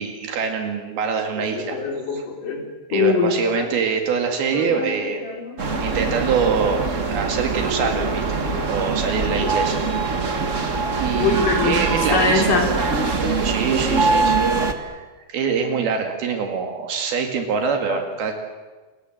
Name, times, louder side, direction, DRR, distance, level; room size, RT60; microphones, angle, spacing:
voice 1, 0.0-1.8 2.1-2.2 2.9-5.2 5.8-8.4 8.7-9.8 11.0-12.6 13.4-18.3, right 6 dB, 75° right, 4 dB, 3.9 m, -24 dB
voice 2, 1.5-2.6 2.9-3.7 4.5-4.9 5.2-6.2 7.8-7.9 8.4-8.9 9.2-10.0 10.5-11.9 12.1-12.7 15.7-15.8 17.9-18.0, left 4 dB, 60° left, 2 dB, 5.2 m, -24 dB
sound 1, 5.6-14.7, right 4 dB, 60° right, 0.7 m, -23 dB
28.5 x 23.0 x 7.8 m, 1.3 s
omnidirectional pair, 4.4 m